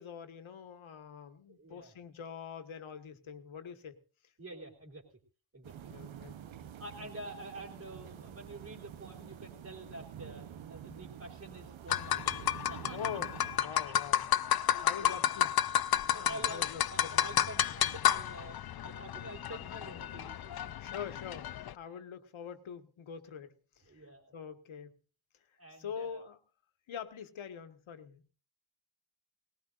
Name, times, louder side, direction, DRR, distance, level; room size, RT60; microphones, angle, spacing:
voice 1, 0.0-4.0 5.9-6.4 6.9-7.1 12.9-14.2 14.8-15.5 16.1-17.4 20.8-24.1 24.3-25.0 25.5-26.4 26.9-28.3, left 7 dB, 85° left, 8 dB, 1.7 m, -44 dB
voice 2, 1.5-1.9 4.4-5.1 5.5-5.9 6.8-13.2 13.6-13.9 14.7-15.4 15.9-18.6 18.8-20.7 21.9-22.0 23.9-24.3 25.6-26.2, right 1 dB, 35° right, -4 dB, 3.6 m, -48 dB
sound 1, 5.6-13.6, right 9 dB, 80° right, 1.0 m, -48 dB
sound 2, 11.9-21.7, left 11 dB, 55° left, 0.6 m, -31 dB
19.5 x 18.5 x 2.6 m, 0.37 s
wide cardioid pair, 140°, 46 cm